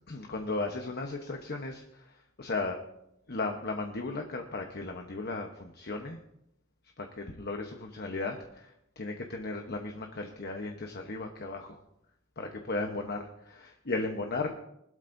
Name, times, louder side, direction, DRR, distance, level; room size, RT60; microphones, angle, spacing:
voice 1, 0.1-2.8 3.3-6.2 7.0-11.8 12.4-14.6, left 3 dB, 50° left, 3 dB, 1.0 m, -36 dB
20.5 x 12.5 x 2.7 m, 0.80 s
head